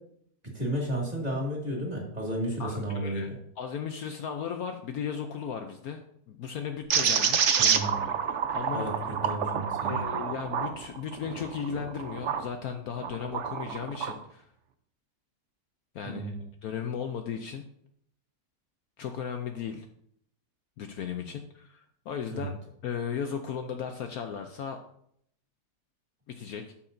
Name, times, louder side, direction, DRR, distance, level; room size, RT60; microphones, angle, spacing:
voice 1, 0.5-3.3 7.6-8.0 8.7-10.0 16.1-16.4 22.3-22.5, right 1 dB, 25° right, -2 dB, 2.2 m, -32 dB
voice 2, 2.6-3.3 3.6-7.5 8.5-8.9 9.8-14.5 15.9-16.3 16.6-17.6 19.0-19.9 20.8-22.6 22.8-24.8 26.3-26.6, left 7 dB, 70° left, 6 dB, 1.0 m, -36 dB
sound 1, 6.9-12.5 13.0-14.2, right 7 dB, 60° right, 0.8 m, -28 dB
13.0 x 5.8 x 2.6 m, 0.69 s
omnidirectional pair, 1.8 m